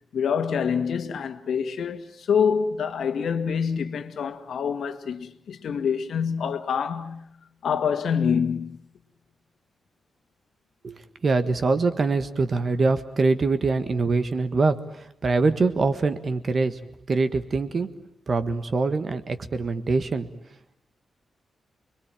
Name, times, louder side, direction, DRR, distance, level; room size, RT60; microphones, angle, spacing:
voice 1, 0.1-7.3 7.6-8.8, left 6 dB, 70° left, 1.9 m, -26 dB
voice 2, 10.8-16.8 17.1-17.9 18.3-20.3, right 3 dB, 35° right, 1.5 m, -24 dB
29.0 x 22.5 x 9.1 m
wide cardioid pair, 180°, 0 cm